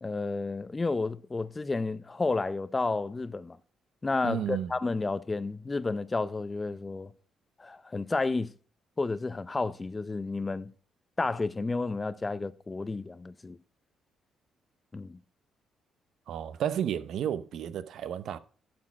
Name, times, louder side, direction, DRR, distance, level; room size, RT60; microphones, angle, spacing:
voice 1, 0.0-3.6 4.0-7.1 7.6-8.5 9.0-10.7 11.2-13.6 14.9-15.2, left 3 dB, 25° left, 0.5 m, -31 dB
voice 2, 4.2-4.7 16.3-18.4, right 9 dB, 70° right, 0.6 m, -32 dB
11.5 x 4.4 x 5.8 m
cardioid pair, 90°, 0 cm